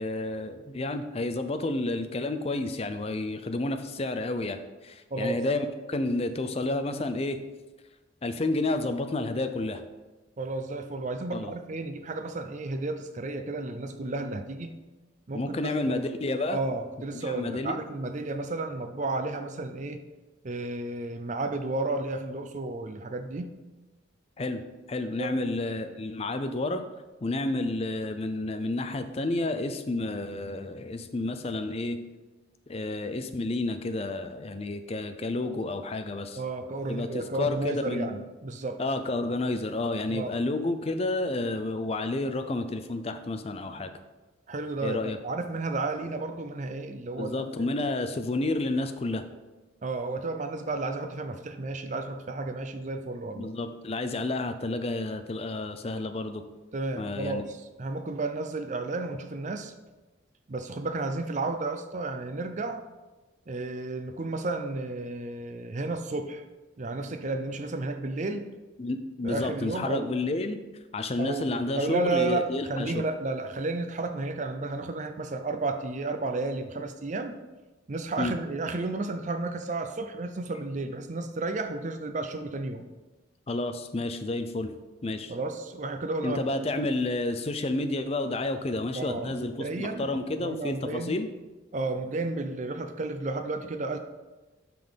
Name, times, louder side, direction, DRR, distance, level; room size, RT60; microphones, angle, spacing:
voice 1, 0.0-7.4 8.2-9.8 11.3-11.5 15.3-16.6 17.1-17.8 24.4-24.6 24.9-26.8 27.2-32.0 32.7-36.4 36.9-38.1 38.8-43.9 44.8-45.2 47.2-49.2 53.4-56.4 56.9-57.4 68.8-70.6 70.9-73.0 78.2-78.4 83.5-84.7 85.0-85.3 86.2-91.3, left 2 dB, 30° left, 8 dB, 0.5 m, -30 dB
voice 2, 10.4-14.8 15.3-16.0 16.5-20.0 20.4-23.6 25.2-25.4 36.4-38.8 40.1-40.3 44.5-47.7 49.8-53.5 56.7-59.7 60.5-62.8 63.5-66.4 66.8-68.5 69.2-70.1 71.2-71.5 71.8-77.3 77.9-82.8 85.3-86.4 86.7-86.8 88.9-90.1 90.4-91.2 91.7-94.0, right 2 dB, 40° right, 7 dB, 0.5 m, -32 dB
5.9 x 5.4 x 5.1 m, 1.2 s
head